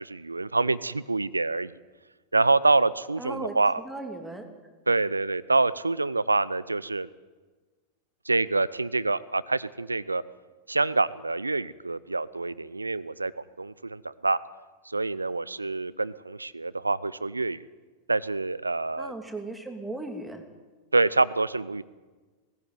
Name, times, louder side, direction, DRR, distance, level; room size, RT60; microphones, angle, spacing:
voice 1, 0.0-1.7 2.3-3.8 4.9-7.1 8.3-10.2 10.7-14.4 14.9-17.7 18.1-19.1 20.9-21.8, right 3 dB, 80° right, 20 dB, 0.6 m, -26 dB
voice 2, 3.2-3.5 3.8-4.5 19.0-20.4, right 2 dB, 5° right, 4 dB, 2.8 m, -36 dB
18.5 x 15.5 x 9.4 m, 1.3 s
figure-of-eight pair, 90°, 0 cm